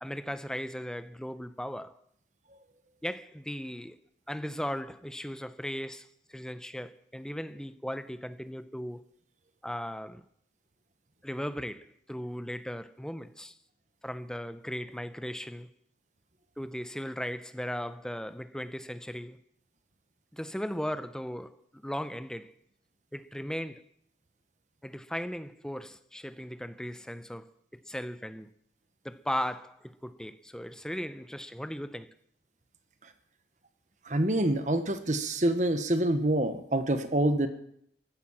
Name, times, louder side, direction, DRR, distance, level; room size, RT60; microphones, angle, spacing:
voice 1, 0.0-2.0 3.0-4.0 4.3-9.1 9.6-10.2 11.2-13.6 14.0-15.7 16.6-19.4 20.3-22.5 23.1-23.8 24.8-28.5 29.0-32.1, equal, 5° left, 0.7 m, -37 dB
voice 2, 34.0-37.5, right 1 dB, 40° right, 1.2 m, -26 dB
15.0 x 12.0 x 7.2 m
head